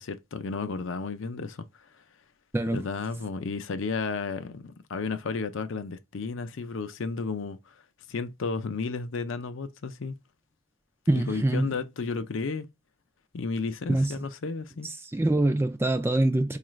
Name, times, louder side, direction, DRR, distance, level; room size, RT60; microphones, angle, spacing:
voice 1, 0.0-1.7 2.7-7.6 8.1-10.1 11.1-12.7 13.3-14.9, left 4 dB, 60° left, 0.5 m, -33 dB
voice 2, 2.5-2.8 11.1-11.7 13.9-14.2 14.8-16.6, right 1 dB, 10° right, 0.3 m, -25 dB
4.7 x 2.4 x 3.1 m
head